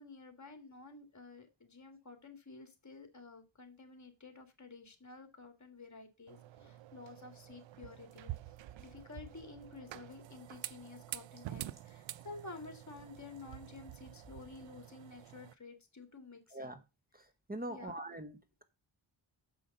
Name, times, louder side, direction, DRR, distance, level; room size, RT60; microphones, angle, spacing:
voice 1, 0.0-8.3 8.8-16.8 17.7-18.0, left 3 dB, 35° left, 6 dB, 2.2 m, -52 dB
sound 1, 6.3-15.5, right 13 dB, 75° right, 0.5 m, -48 dB
sound 2, 8.1-14.7, right 3 dB, 55° right, 3.7 m, -61 dB
voice 2, 17.1-18.6, right 1 dB, 20° right, 10 dB, 1.0 m, -43 dB
6.8 x 5.6 x 6.6 m, 0.29 s
wide cardioid pair, 85°, 46 cm